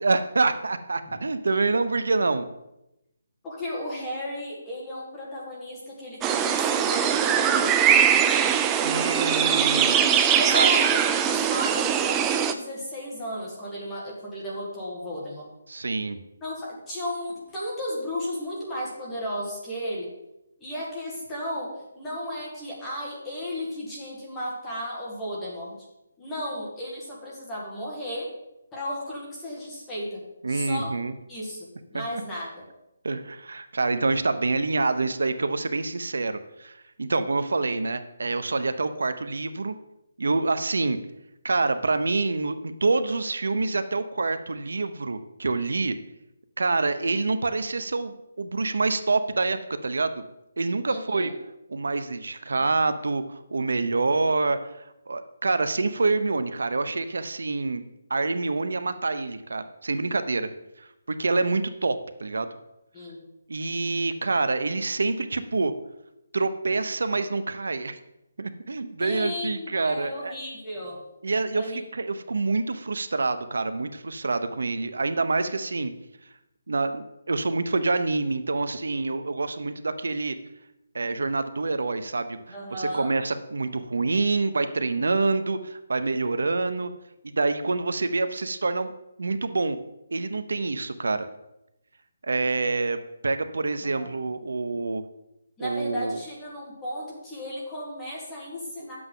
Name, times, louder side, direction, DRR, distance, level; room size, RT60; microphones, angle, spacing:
voice 1, 0.0-2.5 8.8-10.7 15.7-16.2 30.4-31.1 31.9-32.2 33.0-39.7 40.2-41.0 41.4-46.0 46.6-50.2 50.6-51.3 51.7-57.8 58.1-60.5 60.8-62.5 63.5-65.7 66.3-68.0 68.4-70.3 71.2-75.9 76.7-80.4 80.9-86.9 87.2-88.9 89.2-89.8 90.1-91.3 92.2-95.0 95.6-96.2, right 3 dB, 85° right, 11 dB, 0.7 m, -26 dB
voice 2, 3.4-8.0 10.3-15.5 16.4-20.1 20.6-21.7 21.9-25.8 26.2-28.3 28.7-30.2 30.5-30.9 31.3-32.7 50.9-51.3 52.6-52.7 62.9-63.2 69.0-71.0 71.5-71.8 82.5-83.1 93.8-94.2 95.6-99.0, equal, 10° left, -5 dB, 1.8 m, -34 dB
sound 1, 6.2-12.5, right 8 dB, 10° right, 0.3 m, -21 dB
10.0 x 7.8 x 3.8 m, 0.89 s
hypercardioid pair, 175°, 0 cm